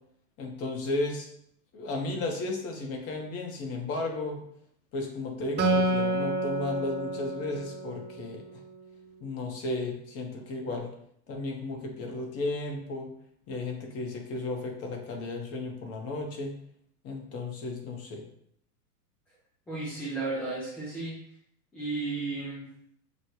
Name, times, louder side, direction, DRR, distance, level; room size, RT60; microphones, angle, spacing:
voice 1, 0.4-1.3 1.7-4.4 4.9-8.6 9.2-10.9 11.3-13.1 13.5-16.5 17.0-18.2, left 2 dB, 30° left, 3 dB, 0.9 m, -34 dB
Acoustic guitar, 5.6-9.0, right 2 dB, 20° right, 0.7 m, -29 dB
voice 2, 19.7-21.2 21.7-22.7, right 3 dB, 5° left, -7 dB, 0.3 m, -33 dB
6.3 x 2.2 x 2.9 m, 0.69 s
hypercardioid pair, 115°, 48 cm